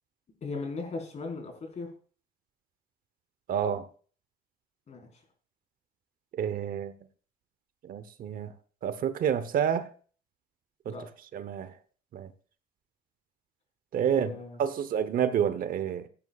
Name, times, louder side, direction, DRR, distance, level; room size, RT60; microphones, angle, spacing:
voice 1, 0.4-1.9 4.9-5.1 10.9-11.0 14.0-14.6, left 3 dB, 40° left, 4.5 m, -37 dB
voice 2, 3.5-3.9 6.3-6.9 7.8-8.5 8.8-9.9 10.8-11.0 11.3-11.7 12.1-12.3 13.9-14.3 14.6-16.1, right 8 dB, 55° right, 0.9 m, -29 dB
16.5 x 9.7 x 2.4 m
cardioid pair, 110°, 17 cm